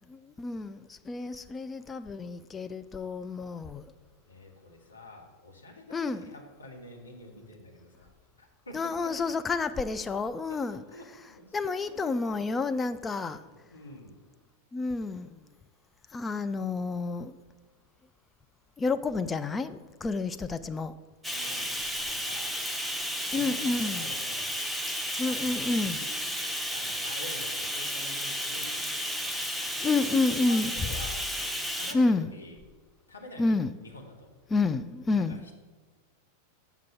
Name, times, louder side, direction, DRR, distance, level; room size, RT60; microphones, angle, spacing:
voice 1, 0.1-3.8 5.9-6.3 8.7-10.8 11.5-13.4 14.7-15.4 16.1-17.3 18.8-20.9 23.3-24.0 25.2-26.0 29.8-30.8 31.9-32.3 33.4-33.7 34.5-35.4, left 3 dB, 15° left, 0.3 m, -29 dB
voice 2, 4.3-8.1 8.4-9.5 10.5-12.9 13.4-14.2 21.3-21.7 22.0-22.6 23.3-24.4 25.3-26.1 26.5-29.4 29.8-31.3 31.7-32.6 33.1-34.3 35.1-35.5, left 1 dB, 75° left, 1.5 m, -47 dB
Bathtub (filling or washing), 21.2-31.9, equal, ahead, 0.7 m, -33 dB
7.5 x 5.8 x 5.7 m
figure-of-eight pair, 90°, 0 cm